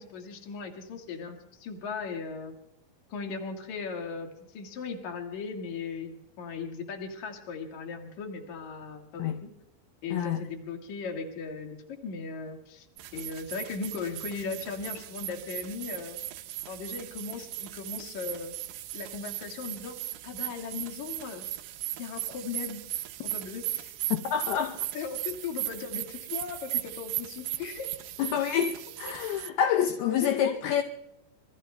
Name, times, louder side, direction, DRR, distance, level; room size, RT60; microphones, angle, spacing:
voice 1, 0.0-2.5 3.1-9.5 10.0-12.9 13.1-16.2 16.7-18.6 18.9-20.0 20.2-21.4 21.9-22.8 23.2-23.9 24.9-28.0 30.0-30.7, left 5 dB, 55° left, 2.6 m, -38 dB
sound 1, 13.0-29.5, right 15 dB, 85° right, 2.0 m, -37 dB
voice 2, 24.1-24.9 28.2-30.8, left 9 dB, 75° left, 2.5 m, -27 dB
27.5 x 24.0 x 2.2 m
omnidirectional pair, 4.9 m